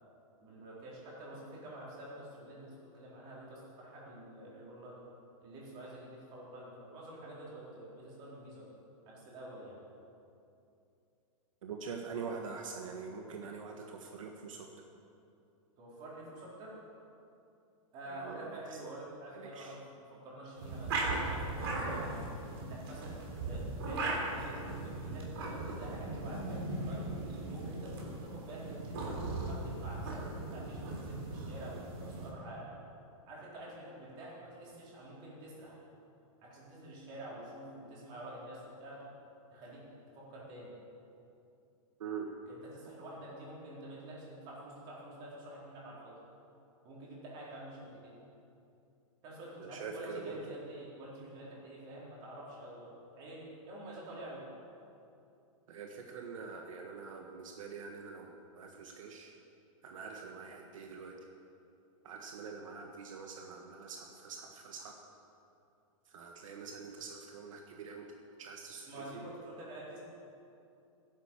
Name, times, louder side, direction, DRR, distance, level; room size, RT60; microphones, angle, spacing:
voice 1, 0.4-5.0 5.4-8.7 9.0-9.8 15.8-16.8 17.9-19.8 20.1-22.2 22.6-27.1 27.5-32.8 33.3-35.8 36.4-39.0 39.5-39.8 40.1-40.7 42.5-46.2 46.8-48.1 49.2-54.5 68.9-70.0, right 1 dB, 25° right, -5 dB, 4.2 m, -48 dB
voice 2, 11.6-14.7 18.0-18.8 19.3-19.8 42.0-42.3 49.6-50.5 55.7-59.3 59.8-61.2 62.0-64.9 66.0-68.1 68.4-69.2, right 5 dB, 70° right, 2 dB, 1.6 m, -44 dB
sound 1, 20.6-32.3, right 2 dB, 45° right, 3.6 m, -38 dB
16.0 x 11.0 x 7.3 m, 2.7 s
supercardioid pair, 180°, 18 cm